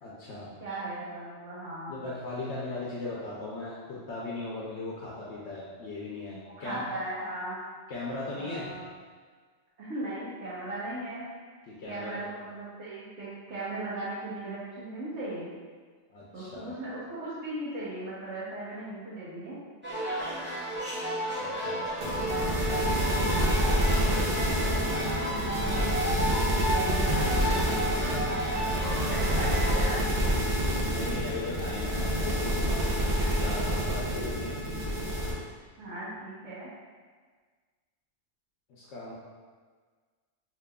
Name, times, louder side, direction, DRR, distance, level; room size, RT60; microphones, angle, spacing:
voice 1, 0.0-0.5 1.9-6.8 7.9-8.7 11.7-12.2 16.1-16.7 21.4-21.9 23.2-24.0 25.2-25.9 30.8-33.1 33.4-34.6 38.7-39.1, left 2 dB, 75° left, -6 dB, 0.9 m, -38 dB
voice 2, 0.6-1.9 6.3-7.6 8.4-8.9 9.8-11.2 11.8-15.5 16.3-19.6 22.0-22.5 23.1-23.5 25.3-28.4 29.0-30.0 30.8-31.0 33.1-33.3 34.1-34.2 35.2-35.3 35.8-36.7, right 2 dB, 70° right, -9 dB, 1.2 m, -38 dB
sound 1, 19.8-29.7, right 1 dB, 10° right, 0.7 m, -33 dB
sound 2, 22.0-35.3, equal, 55° right, 0.8 m, -27 dB
4.9 x 2.8 x 2.2 m, 1.5 s
omnidirectional pair, 1.2 m